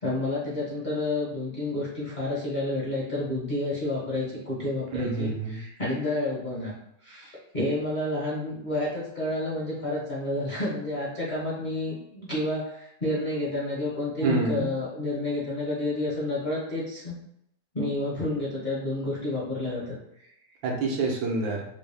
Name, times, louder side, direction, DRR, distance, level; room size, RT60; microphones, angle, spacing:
voice 1, 0.0-6.7 7.0-17.2 17.7-20.3, left 1 dB, 30° left, -8 dB, 0.9 m, -30 dB
voice 2, 4.9-5.6 14.2-14.7 20.6-21.7, right 3 dB, 75° right, 0 dB, 1.5 m, -27 dB
4.3 x 2.3 x 3.3 m, 0.76 s
omnidirectional pair, 2.1 m